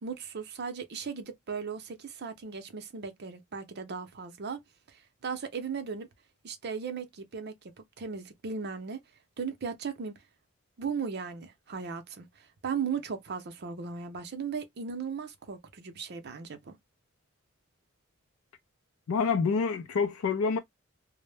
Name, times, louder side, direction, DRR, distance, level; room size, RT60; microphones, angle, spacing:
voice 1, 0.0-4.6 4.9-6.1 6.4-9.0 9.4-10.1 10.8-16.8, right 6 dB, 50° right, 0.6 m, -37 dB
voice 2, 19.1-20.6, left 5 dB, 85° left, 0.4 m, -27 dB
2.0 x 2.0 x 3.2 m
head